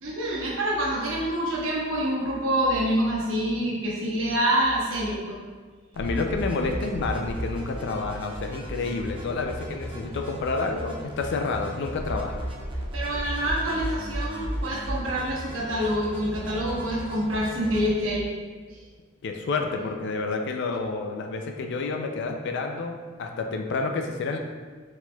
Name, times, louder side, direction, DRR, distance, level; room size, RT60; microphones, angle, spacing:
voice 1, 0.0-5.4 12.9-18.3 18.7-18.8, equal, 80° right, -4 dB, 1.1 m, -26 dB
sound 1, 5.9-17.9, equal, 25° right, 0.7 m, -35 dB
voice 2, 6.0-12.4 19.2-24.4, left 3 dB, 60° left, 3 dB, 0.4 m, -29 dB
4.3 x 4.3 x 2.2 m, 1.5 s
head